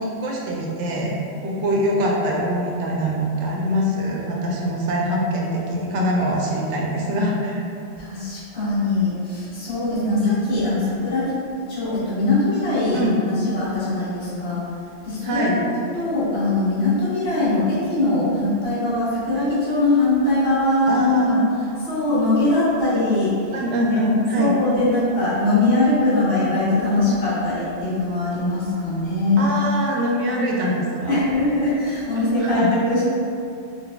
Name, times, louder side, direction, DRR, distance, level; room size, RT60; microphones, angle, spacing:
voice 1, 0.0-1.1 1.4-7.6 10.0-10.3 12.9-13.1 15.2-15.6 20.9-21.4 23.5-24.6 29.4-31.2 32.4-32.7, equal, 70° right, -2 dB, 0.9 m, -23 dB
voice 2, 8.0-11.4 11.7-14.6 15.0-15.6 15.9-21.4 21.8-23.3 24.4-29.7 31.1-33.0, left 2 dB, 60° left, -12 dB, 1.3 m, -21 dB
3.8 x 2.5 x 2.2 m, 2.5 s
omnidirectional pair, 1.3 m